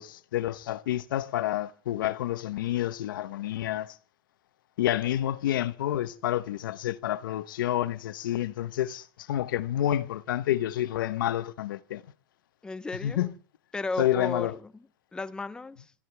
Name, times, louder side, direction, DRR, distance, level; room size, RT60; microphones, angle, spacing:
voice 1, 0.0-3.9 4.8-12.0 13.0-13.3 14.0-14.5, left 12 dB, 85° left, 1.0 m, -29 dB
voice 2, 12.6-13.3 13.7-15.9, left 3 dB, 10° left, 0.7 m, -35 dB
25.0 x 14.5 x 3.4 m
supercardioid pair, 140°, 11 cm